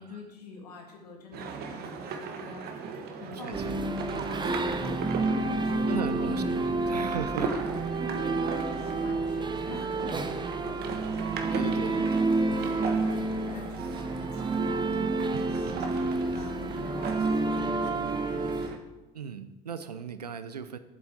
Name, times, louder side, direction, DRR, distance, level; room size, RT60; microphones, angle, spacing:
voice 1, 0.0-4.5 4.8-6.5 7.0-7.6 8.2-18.8, left 2 dB, 80° left, 1 dB, 2.0 m, -45 dB
sound 1, 1.3-18.8, right 5 dB, 55° right, 1.4 m, -39 dB
voice 2, 3.4-4.6 5.9-7.5 11.5-12.0 12.4-12.7 19.1-20.8, right 7 dB, 90° right, 12 dB, 0.6 m, -37 dB
sound 2, 3.5-18.7, right 3 dB, 25° right, 1.0 m, -29 dB
12.0 x 7.6 x 4.4 m, 1.1 s
figure-of-eight pair, 60°, 20 cm